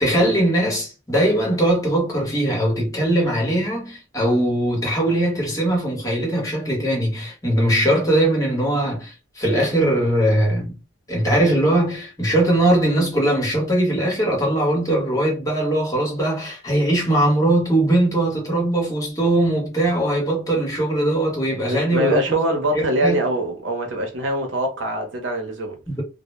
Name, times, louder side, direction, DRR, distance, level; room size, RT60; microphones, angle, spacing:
voice 1, 0.0-10.7 11.1-22.4 22.7-23.2 25.9-26.0, right 1 dB, 20° left, 0.9 m, -20 dB
voice 2, 21.7-25.8, right 1 dB, 75° right, 0.7 m, -23 dB
2.0 x 2.0 x 3.1 m
head